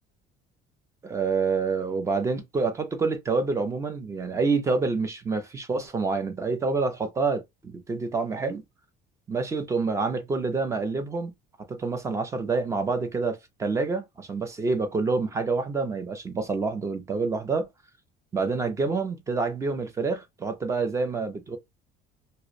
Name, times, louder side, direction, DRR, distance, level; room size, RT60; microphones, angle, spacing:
voice 1, 1.0-8.6 9.3-11.3 11.7-17.7 18.3-21.6, right 4 dB, 15° right, 0.4 m, -27 dB
2.4 x 2.0 x 2.5 m
cardioid pair, 170°, 20 cm